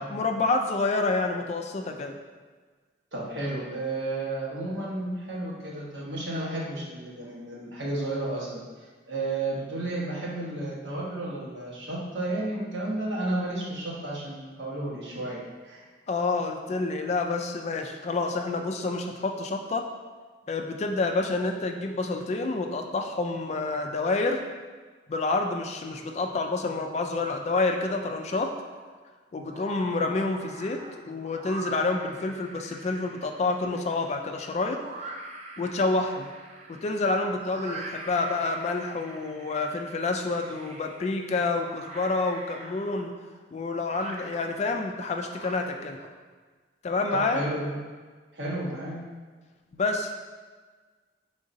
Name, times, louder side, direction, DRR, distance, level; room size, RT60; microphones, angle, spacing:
voice 1, 0.1-2.2 16.1-19.8 20.5-24.4 25.1-28.5 29.3-30.8 31.0-34.8 35.6-36.3 36.7-43.1 43.5-46.0 46.8-47.4 49.7-50.1, left 3 dB, 35° left, 4 dB, 0.3 m, -28 dB
voice 2, 3.1-8.6 9.1-15.8 47.1-47.8 48.3-49.0, right 2 dB, 75° right, -5 dB, 1.1 m, -32 dB
sound 1, 28.3-29.0 29.4-46.1, right 2 dB, 35° right, 0.4 m, -44 dB
5.0 x 3.7 x 2.6 m, 1.4 s
head